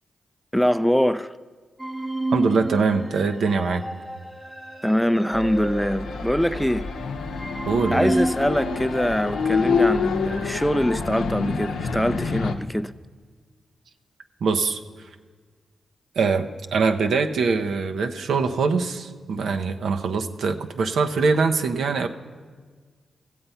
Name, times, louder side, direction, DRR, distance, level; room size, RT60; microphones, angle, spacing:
voice 1, 0.5-1.3 4.8-6.9 7.9-12.9, equal, ahead, 0.4 m, -23 dB
sound 1, 1.8-10.8, right 1 dB, 15° right, 0.7 m, -31 dB
voice 2, 2.3-3.8 7.6-8.1 14.4-14.8 16.2-16.5 16.7-22.1, right 4 dB, 75° right, 0.7 m, -23 dB
sound 2, 5.3-12.6, left 5 dB, 85° left, 0.6 m, -27 dB
15.0 x 7.8 x 5.6 m
supercardioid pair, 40°, 0 cm